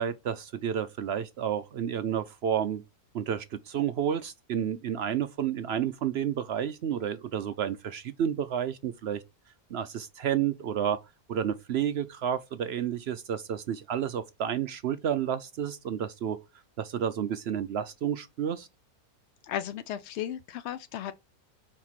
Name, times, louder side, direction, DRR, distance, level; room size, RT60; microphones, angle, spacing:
voice 1, 0.0-2.8 3.1-9.2 9.7-11.0 11.3-16.4 16.8-18.7, right 9 dB, 70° right, 0.6 m, -30 dB
voice 2, 19.4-21.1, left 11 dB, 75° left, 0.6 m, -35 dB
4.7 x 4.4 x 5.7 m
omnidirectional pair, 1.7 m